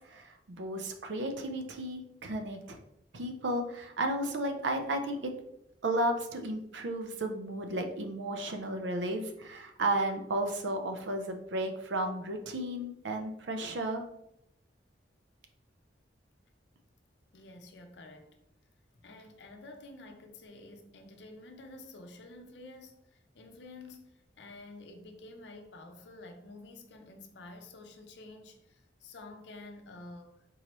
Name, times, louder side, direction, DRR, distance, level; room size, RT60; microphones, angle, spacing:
voice 1, 0.0-2.8 3.1-5.3 5.8-14.0, right 1 dB, 85° right, 0.5 m, -33 dB
voice 2, 17.3-18.4 19.0-30.5, left 2 dB, 70° left, 0.6 m, -50 dB
3.8 x 3.0 x 2.9 m
head